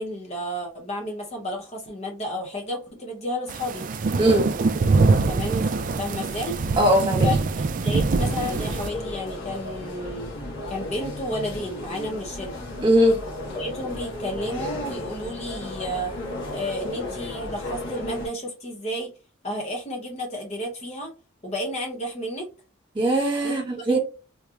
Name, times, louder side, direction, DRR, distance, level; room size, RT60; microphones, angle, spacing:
voice 1, 0.0-3.9 5.3-6.6 7.2-7.4 7.8-10.3 10.7-12.6 13.5-16.1 16.5-19.1 19.4-21.1 21.4-22.5 23.4-23.6 23.9-24.0, equal, 30° left, 0.8 m, -32 dB
sound 1, 3.5-8.9, right 3 dB, 40° right, 0.3 m, -23 dB
voice 2, 4.2-4.5 6.8-7.3 12.8-13.2 22.9-24.0, right 1 dB, 25° right, 1.4 m, -20 dB
sound 2, 8.2-18.3, left 2 dB, 60° left, 1.5 m, -34 dB
3.8 x 3.2 x 2.4 m
head